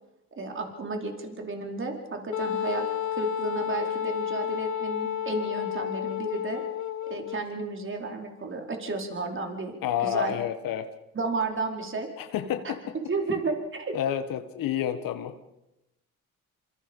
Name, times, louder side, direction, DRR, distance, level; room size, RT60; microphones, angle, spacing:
voice 1, 0.4-2.9 3.1-6.6 7.1-9.7 10.0-10.4 11.1-12.1 12.6-12.7 13.0-14.0, right 3 dB, 35° right, 3 dB, 4.7 m, -32 dB
Wind instrument woodwind instrument, 2.3-7.5, left 9 dB, 55° left, 1.2 m, -31 dB
voice 2, 9.8-10.9 12.2-12.9 13.9-15.4, left 10 dB, 75° left, 9 dB, 1.6 m, -29 dB
27.0 x 25.5 x 5.5 m, 0.92 s
cardioid pair, 90°, 34 cm